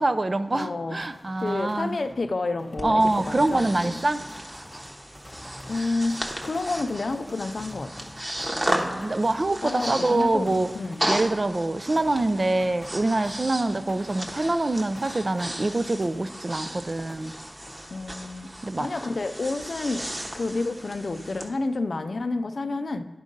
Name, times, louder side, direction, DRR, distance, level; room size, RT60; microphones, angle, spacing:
voice 1, 0.0-2.0 2.8-4.2 8.7-10.7 11.1-17.3 18.6-18.9, right 2 dB, 50° right, 12 dB, 0.4 m, -25 dB
voice 2, 0.5-1.0 1.4-4.0 5.7-6.2 6.4-8.1 9.6-11.1 17.9-18.5 18.8-20.1 20.3-23.1, left 3 dB, 75° left, 9 dB, 0.4 m, -29 dB
sound 1, 1.0-16.7 17.1-18.4, left 1 dB, 20° left, 0.6 m, -48 dB
Breathing, 2.8-21.5, right 1 dB, 30° right, 1.0 m, -35 dB
10.5 x 3.7 x 5.2 m, 1.4 s
wide cardioid pair, 50°, 0 cm